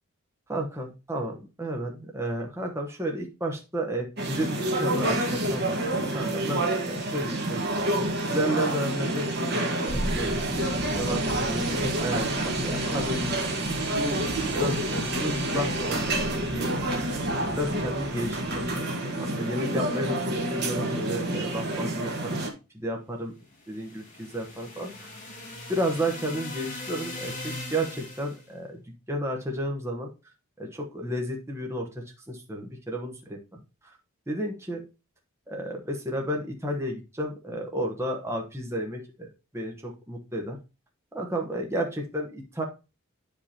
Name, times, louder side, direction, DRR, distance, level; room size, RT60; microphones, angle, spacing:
voice 1, 0.5-7.8 8.2-13.4 14.0-14.3 14.5-17.1 17.5-22.4 22.7-23.3 23.7-25.1 25.7-28.8 29.1-30.1 30.6-33.6 34.3-34.8 35.5-39.3 39.5-40.6 41.1-42.6, right 1 dB, 10° right, 1 dB, 1.0 m, -32 dB
sound 1, 4.2-22.5, right 1 dB, 45° right, 1.4 m, -28 dB
sound 2, 9.9-18.7, left 1 dB, 85° left, 2.2 m, -37 dB
sound 3, 23.5-28.4, left 2 dB, 35° left, 2.7 m, -40 dB
9.4 x 5.1 x 2.8 m, 0.28 s
head